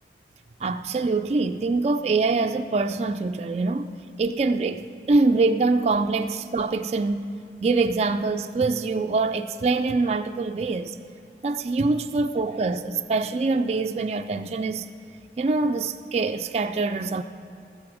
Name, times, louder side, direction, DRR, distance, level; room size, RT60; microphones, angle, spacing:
voice 1, 0.6-3.9 4.2-7.3 7.6-11.0 11.4-14.9 15.4-17.2, right 3 dB, 35° right, 0.3 m, -24 dB
20.0 x 6.7 x 4.9 m
head